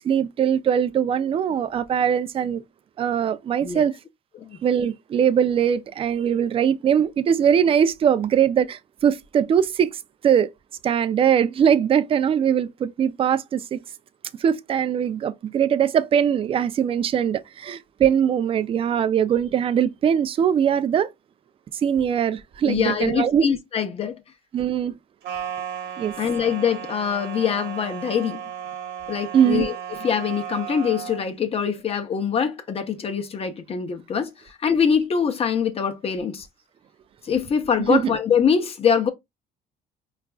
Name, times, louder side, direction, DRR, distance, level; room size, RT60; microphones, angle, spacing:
voice 1, 0.0-2.6 3.0-3.9 4.6-10.5 10.8-13.8 14.4-21.1 21.8-23.5 24.5-24.9 26.0-26.1 29.3-29.7 37.9-38.1, right 8 dB, 35° right, 0.3 m, -21 dB
voice 2, 22.6-24.2 26.2-28.4 29.1-29.8 30.0-34.3 34.6-36.5 37.2-39.1, left 7 dB, 35° left, 0.7 m, -23 dB
sound 1, 25.2-31.2, right 9 dB, 75° right, 0.9 m, -34 dB
4.5 x 2.4 x 2.3 m
cardioid pair, 110°, 17 cm